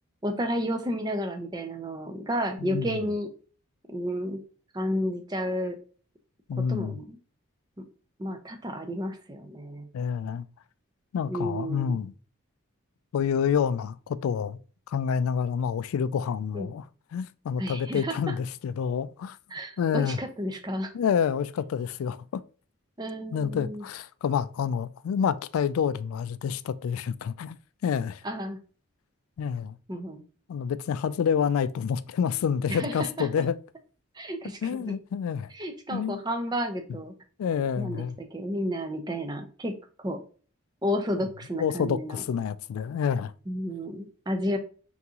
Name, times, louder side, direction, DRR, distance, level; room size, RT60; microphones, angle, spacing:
voice 1, 0.2-3.3 3.9-4.4 4.7-5.8 6.6-7.2 7.8-7.9 8.2-9.9 11.3-12.0 16.5-16.7 17.6-18.3 19.5-20.9 23.0-23.8 28.2-28.6 29.9-30.2 32.7-33.3 34.2-34.9 35.5-37.1 37.8-38.0 38.3-40.2 40.8-42.2 43.5-44.6, equal, 20° right, 0.5 m, -31 dB
voice 2, 2.6-3.0 6.5-7.0 9.9-10.4 11.1-12.1 13.1-14.6 14.9-16.9 17.1-19.4 19.8-20.2 20.9-22.4 23.3-27.6 27.8-28.2 29.4-29.8 30.5-33.6 34.6-35.5 35.9-36.2 37.4-38.2 41.6-43.3, left 7 dB, 85° left, 0.3 m, -28 dB
3.9 x 3.5 x 2.9 m
head